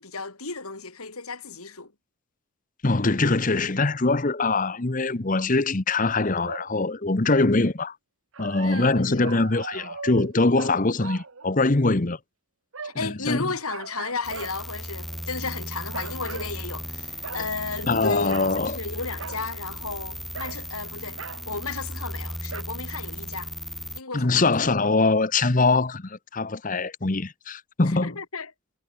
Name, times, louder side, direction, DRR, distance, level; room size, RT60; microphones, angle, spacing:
voice 1, 0.0-1.9 8.6-9.3 12.8-21.2 21.5-23.5 23.9-24.7 27.8-28.5, left 4 dB, 90° left, 4.4 m, -34 dB
voice 2, 2.8-8.0 8.4-12.2 13.0-13.5 17.9-18.8 24.1-28.2, left 3 dB, 35° left, 1.0 m, -23 dB
sound 1, 6.3-6.7 8.3-12.0 12.7-13.1 13.7-14.5 15.1-15.4 15.9-16.5 17.2-17.5 18.3-18.6 19.2-19.4 20.3-20.6 21.2-21.4 22.5-22.6, right 5 dB, 70° right, 1.2 m, -39 dB
sound 2, 14.2-24.0, equal, ahead, 3.5 m, -36 dB
head